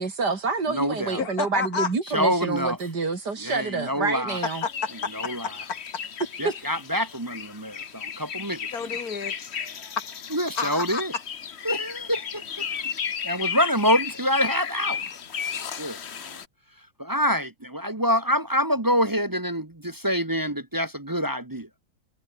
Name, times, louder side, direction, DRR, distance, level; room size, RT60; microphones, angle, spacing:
voice 1, 0.0-4.6 6.4-6.5, right 4 dB, 90° right, 4.0 m, -27 dB
voice 2, 0.7-1.2 2.1-2.8 3.4-4.4 5.1-5.5 6.4-8.7 10.3-11.1 11.6-12.7 13.2-15.1 15.8-16.4 17.0-21.7, equal, 15° right, 1.0 m, -26 dB
voice 3, 1.2-1.9 4.6-5.8 8.7-10.2 10.6-11.0, left 5 dB, 65° left, 2.4 m, -31 dB
sound 1, 4.3-16.5, left 7 dB, 45° left, 1.2 m, -34 dB
omnidirectional pair, 1.7 m